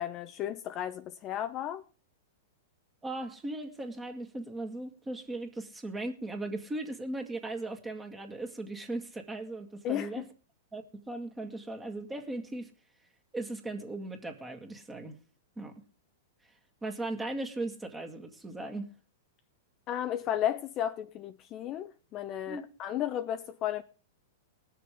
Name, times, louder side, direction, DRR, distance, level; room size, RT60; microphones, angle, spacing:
voice 1, 0.0-1.8 9.8-10.1 19.9-23.8, left 11 dB, 35° left, 0.8 m, -33 dB
voice 2, 3.0-10.3 10.7-12.7 13.3-15.2 15.6-15.7 16.4-18.9 22.5-22.7, right 2 dB, 15° right, 2.0 m, -38 dB
19.5 x 6.9 x 5.1 m
hypercardioid pair, 115°, 0 cm